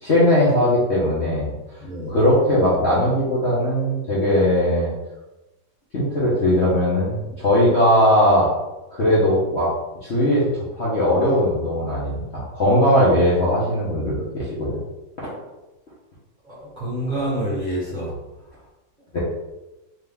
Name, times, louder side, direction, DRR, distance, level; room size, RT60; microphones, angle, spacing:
voice 1, 0.0-1.5 2.1-4.9 5.9-8.5 8.9-9.7 10.0-10.5 10.8-14.8 15.2-15.3 19.1-19.2, left 1 dB, 45° left, -8 dB, 0.9 m, -19 dB
voice 2, 1.8-2.1 16.5-18.1, right 1 dB, 30° right, -8 dB, 0.9 m, -27 dB
3.7 x 3.3 x 3.5 m, 1.0 s
omnidirectional pair, 2.1 m